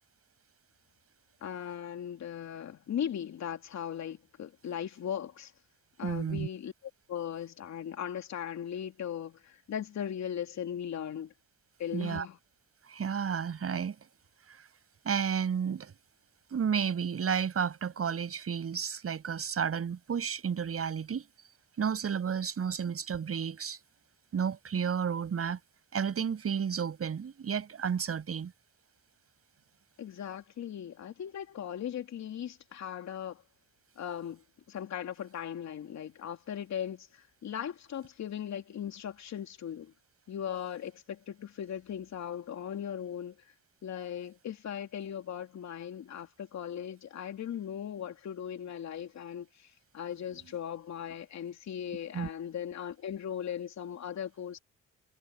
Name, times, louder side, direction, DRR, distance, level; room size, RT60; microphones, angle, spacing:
voice 1, 1.4-5.5 6.0-6.7 7.1-11.3 11.8-12.4 30.0-33.4 34.0-39.9 40.3-43.4 43.8-54.6, left 9 dB, 65° left, 3.2 m, -38 dB
voice 2, 6.0-6.5 11.9-12.3 12.9-14.0 14.5-14.6 15.0-15.9 16.5-21.3 21.8-23.8 24.3-25.6 25.9-28.5 52.1-52.3, right 7 dB, 50° right, 7.6 m, -32 dB
cardioid pair, 90°, 30 cm